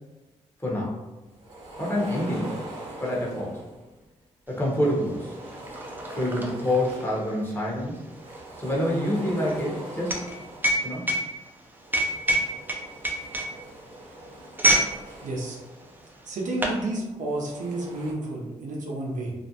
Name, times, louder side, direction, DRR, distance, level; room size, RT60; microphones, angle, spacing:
voice 1, 0.6-1.0 1.8-2.6 3.0-3.6 4.5-5.4 6.1-8.0 8.6-10.3 10.8-11.1, left 1 dB, 15° left, -4 dB, 1.0 m, -27 dB
sound 1, 1.3-4.0 4.6-7.5 7.8-11.0 11.7-16.5 17.1-18.1, right 1 dB, 45° right, 1.0 m, -42 dB
sound 2, 4.6-4.7 5.0-14.9 15.2-15.5 16.2-16.8, right 1 dB, 15° right, 0.6 m, -27 dB
voice 2, 15.2-15.6 16.2-19.3, right 2 dB, 70° right, -2 dB, 0.6 m, -31 dB
2.5 x 2.1 x 2.8 m, 1.1 s
supercardioid pair, 55°, 13 cm